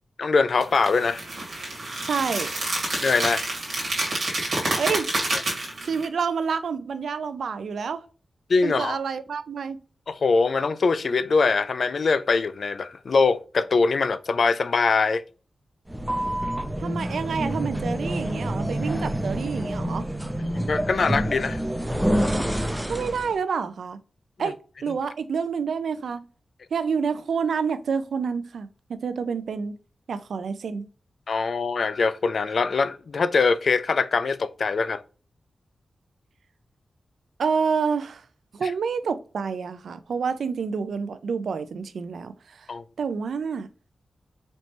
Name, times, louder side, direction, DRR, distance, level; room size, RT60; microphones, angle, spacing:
voice 1, 0.2-1.2 3.0-3.4 5.3-5.4 8.5-9.0 10.1-15.2 20.5-21.6 31.3-35.0 38.6-38.7 42.7-42.8, left 4 dB, 65° left, 0.3 m, -23 dB
sound 1, 0.6-6.0, right 2 dB, 65° right, 1.6 m, -28 dB
voice 2, 2.0-2.5 4.8-5.1 5.8-8.0 8.6-9.8 16.8-20.1 22.9-24.0 24.4-26.3 26.7-29.8 30.1-30.9 37.4-38.2 38.5-42.7 43.0-43.7, right 5 dB, 85° right, 0.4 m, -28 dB
sound 2, 15.9-23.4, equal, 10° right, 0.5 m, -27 dB
4.2 x 3.2 x 2.9 m
wide cardioid pair, 95°, 0 cm